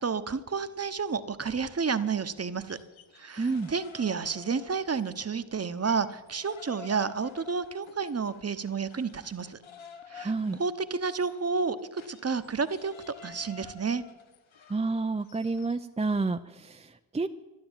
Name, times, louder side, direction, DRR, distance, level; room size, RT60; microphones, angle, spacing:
voice 1, 0.0-2.8 3.2-9.6 10.1-10.3 10.6-12.9 13.2-14.0, right 5 dB, 30° right, 12 dB, 1.0 m, -30 dB
sound 1, 2.5-5.3 5.6-15.9, left 6 dB, 75° left, 1.6 m, -51 dB
voice 2, 3.4-3.7 10.2-10.6 14.7-17.3, right 3 dB, 15° right, 7 dB, 0.5 m, -29 dB
12.5 x 11.5 x 8.9 m, 1.1 s
cardioid pair, 80°, 48 cm